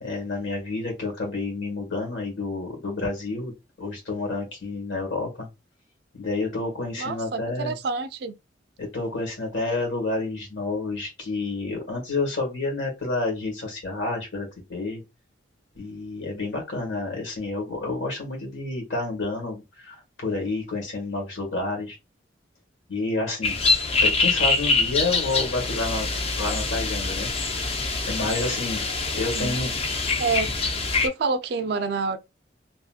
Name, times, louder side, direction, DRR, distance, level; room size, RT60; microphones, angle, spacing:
voice 1, 0.0-5.5 6.1-7.7 8.8-15.0 15.7-22.0 22.9-23.6 24.0-26.1 26.4-27.5 28.1-29.7, left 3 dB, 80° left, 1.5 m, -29 dB
voice 2, 7.0-8.4 29.3-29.5 30.2-30.5 31.0-32.2, right 4 dB, 55° right, 0.3 m, -27 dB
sound 1, 23.4-31.1, left 3 dB, 30° left, 0.5 m, -25 dB
2.9 x 2.7 x 2.3 m
head